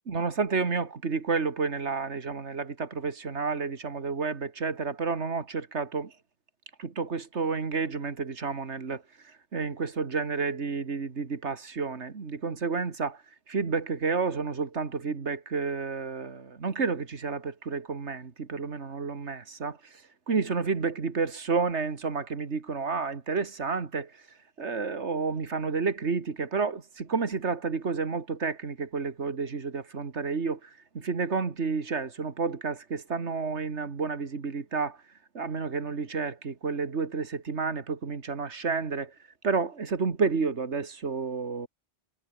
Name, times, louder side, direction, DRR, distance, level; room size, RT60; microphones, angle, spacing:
voice 1, 0.1-6.1 6.8-9.0 9.5-13.2 13.5-19.8 20.3-24.1 24.6-30.7 30.9-35.0 35.3-39.1 39.4-41.7, right 4 dB, 85° right, 2.2 m, -30 dB
omnidirectional pair, 1.1 m